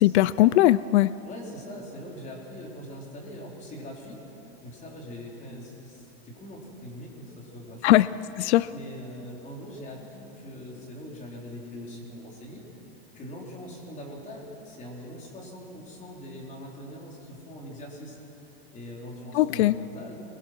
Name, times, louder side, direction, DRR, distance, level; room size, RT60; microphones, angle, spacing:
voice 1, 0.0-1.1 7.8-8.1 8.4-8.7 19.3-19.7, left 15 dB, 90° left, 18 dB, 0.5 m, -19 dB
voice 2, 1.2-4.2 4.6-8.0 8.7-12.6 13.1-18.2 18.7-20.2, left 1 dB, 20° left, -1 dB, 4.2 m, -42 dB
24.5 x 22.0 x 6.1 m, 3.0 s
supercardioid pair, 155°, 33 cm